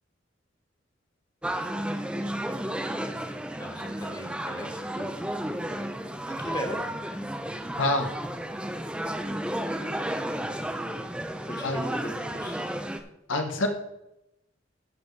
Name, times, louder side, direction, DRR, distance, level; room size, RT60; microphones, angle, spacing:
sound 1, 1.4-13.0, right 1 dB, 5° right, 0.5 m, -33 dB
voice 1, 3.6-5.3 6.3-6.8 10.3-10.9 11.5-12.7, equal, 25° left, 1 dB, 1.6 m, -38 dB
voice 2, 7.8-8.1 11.6-11.8 13.3-13.7, left 2 dB, 85° left, 5 dB, 1.0 m, -26 dB
15.0 x 6.7 x 3.2 m, 0.87 s
head